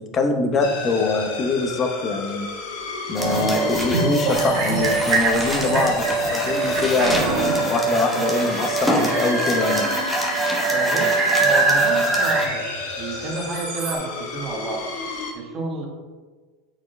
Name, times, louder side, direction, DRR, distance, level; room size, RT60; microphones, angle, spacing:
voice 1, 0.1-2.5 3.1-6.0 6.3-7.2 7.7-9.9, left 3 dB, 30° left, 5 dB, 0.8 m, -23 dB
sound 1, 0.6-15.3, left 3 dB, 65° left, 1.3 m, -33 dB
sound 2, 3.1-12.5, right 2 dB, ahead, 1.1 m, -25 dB
sound 3, 3.1-14.0, right 3 dB, 60° right, 1.5 m, -25 dB
voice 2, 10.7-12.7 13.0-14.9 15.3-15.9, right 3 dB, 30° right, 0 dB, 1.4 m, -30 dB
7.0 x 4.3 x 3.3 m, 1.4 s
supercardioid pair, 115°, 0 cm